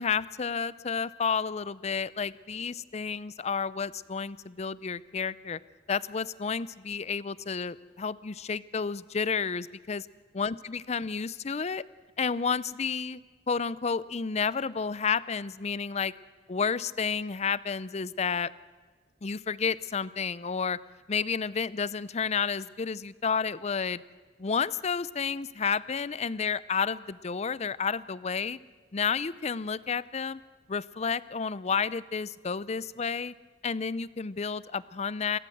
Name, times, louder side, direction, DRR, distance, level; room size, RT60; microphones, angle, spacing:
voice 1, 0.0-5.6 5.9-10.1 10.3-11.8 12.2-13.2 13.5-16.1 16.5-18.5 19.2-20.8 21.1-24.0 24.4-28.6 28.9-30.4 30.7-33.3 33.6-35.4, left 5 dB, 40° left, 19 dB, 0.6 m, -31 dB
28.0 x 14.5 x 7.9 m, 1.4 s
head